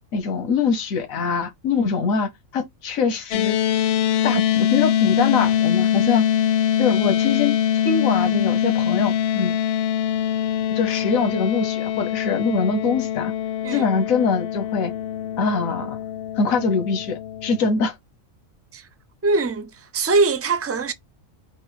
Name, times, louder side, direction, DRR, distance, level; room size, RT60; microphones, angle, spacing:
voice 1, 0.1-3.6 4.2-6.2 6.8-9.6 10.7-13.3 13.7-14.9 15.4-16.0 16.4-17.9, left 5 dB, 85° left, 1.3 m, -23 dB
sound 1, 3.3-17.7, left 10 dB, 65° left, 0.7 m, -23 dB
voice 2, 19.2-20.9, right 3 dB, 20° right, 0.4 m, -22 dB
6.0 x 2.1 x 4.0 m
omnidirectional pair, 1.4 m